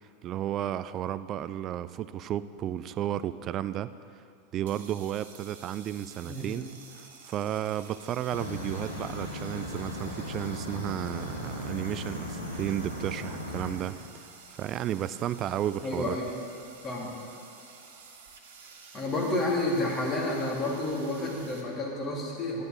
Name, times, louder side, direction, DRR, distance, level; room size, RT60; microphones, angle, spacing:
voice 1, 0.2-3.9 4.5-14.0 14.6-16.2, right 11 dB, 35° right, 15 dB, 0.3 m, -33 dB
sound 1, 4.6-21.6, right 5 dB, 60° right, 1.2 m, -51 dB
sound 2, 8.3-13.8, left 1 dB, 80° left, 1.3 m, -37 dB
voice 2, 15.8-16.3 16.8-17.1 18.9-22.6, left 2 dB, 25° left, -3 dB, 2.5 m, -30 dB
11.5 x 11.0 x 3.8 m, 2.5 s
figure-of-eight pair, 85°, 0 cm